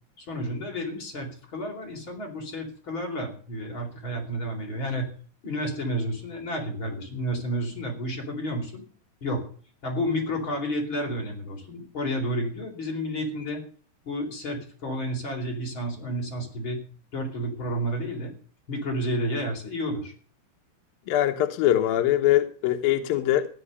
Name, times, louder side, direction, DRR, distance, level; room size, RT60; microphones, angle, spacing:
voice 1, 0.2-5.1 5.4-8.8 9.2-9.5 9.8-13.6 14.0-16.8 17.1-18.3 18.7-20.1, equal, 30° left, 4.5 m, -31 dB
voice 2, 21.1-23.5, left 13 dB, 70° left, 2.5 m, -22 dB
15.5 x 10.5 x 6.7 m
omnidirectional pair, 5.0 m